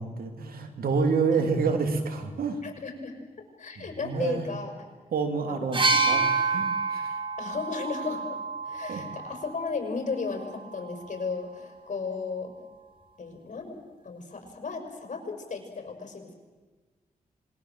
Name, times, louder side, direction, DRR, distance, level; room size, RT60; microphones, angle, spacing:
voice 1, 0.0-2.6 3.8-4.5 5.1-6.2 6.5-7.2 8.9-9.0, right 4 dB, 90° right, 6 dB, 3.1 m, -28 dB
voice 2, 2.6-3.1 3.6-4.7 5.4-6.3 7.4-8.4 8.6-12.5 13.2-13.8 14.0-16.3, left 4 dB, 55° left, 4 dB, 5.8 m, -35 dB
sound 1, 5.7-9.5 10.6-10.7, right 4 dB, 35° right, 2.7 m, -27 dB
26.5 x 22.0 x 7.6 m, 1.3 s
cardioid pair, 80°, 15 cm